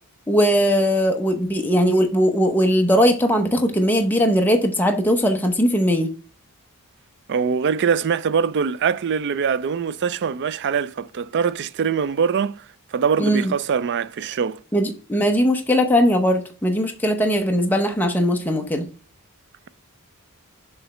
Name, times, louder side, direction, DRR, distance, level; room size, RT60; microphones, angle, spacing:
voice 1, 0.3-6.1 13.2-13.5 14.7-18.9, equal, 10° left, 0.7 m, -19 dB
voice 2, 7.3-12.6 12.9-14.6, right 6 dB, 50° right, 0.4 m, -23 dB
7.0 x 3.3 x 4.9 m
head